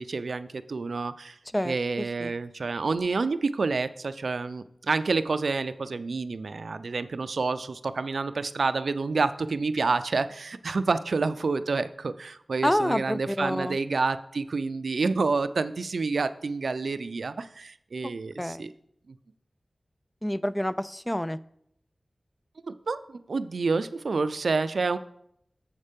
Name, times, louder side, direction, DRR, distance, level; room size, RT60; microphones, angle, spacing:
voice 1, 0.0-1.4 1.6-18.7 22.6-25.0, right 4 dB, 85° right, 12 dB, 0.4 m, -28 dB
voice 2, 1.5-2.3 12.6-13.8 18.4-18.7 20.2-21.4, equal, 15° left, 14 dB, 0.4 m, -28 dB
7.2 x 5.4 x 5.1 m, 0.72 s
cardioid pair, 45°, 0 cm